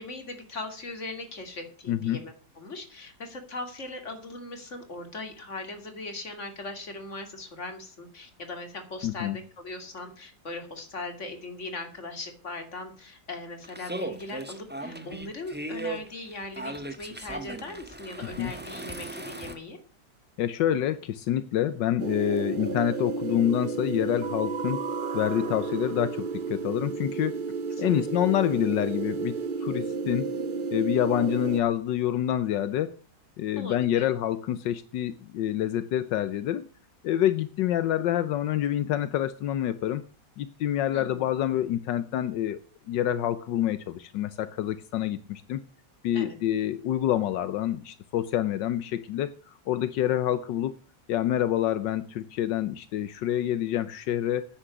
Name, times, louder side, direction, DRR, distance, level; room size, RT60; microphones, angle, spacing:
voice 1, 0.0-19.8 27.8-28.0 33.6-34.1 40.9-41.2 46.1-46.4, left 2 dB, 40° left, 6 dB, 2.8 m, -39 dB
voice 2, 1.9-2.2 9.0-9.4 18.4-18.5 20.4-24.8 25.1-27.4 27.8-30.3 30.7-33.0 33.4-36.6 37.0-40.0 40.4-42.6 42.9-45.6 46.0-50.7 51.1-54.5, left 11 dB, 85° left, 13 dB, 1.4 m, -27 dB
sound 1, 13.6-19.6, right 2 dB, 5° right, 1.2 m, -37 dB
sound 2, 22.0-31.6, right 4 dB, 60° right, 0.5 m, -32 dB
9.9 x 8.7 x 8.1 m, 0.38 s
omnidirectional pair, 1.9 m